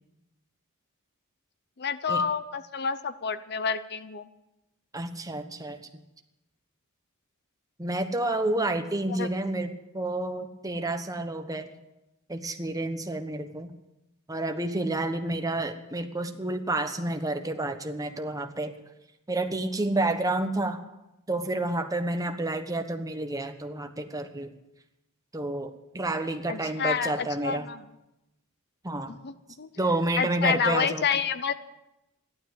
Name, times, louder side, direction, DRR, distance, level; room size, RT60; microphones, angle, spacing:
voice 1, 1.8-4.3 9.1-9.3 26.5-27.8 29.1-29.7 30.2-31.5, left 6 dB, 50° left, 13 dB, 0.7 m, -29 dB
voice 2, 4.9-5.8 7.8-11.7 12.3-13.7 14.3-18.7 19.3-20.8 21.3-24.5 25.3-27.7 28.8-29.1 29.8-31.0, right 2 dB, 15° right, 6 dB, 1.1 m, -29 dB
14.5 x 12.0 x 8.1 m, 0.93 s
head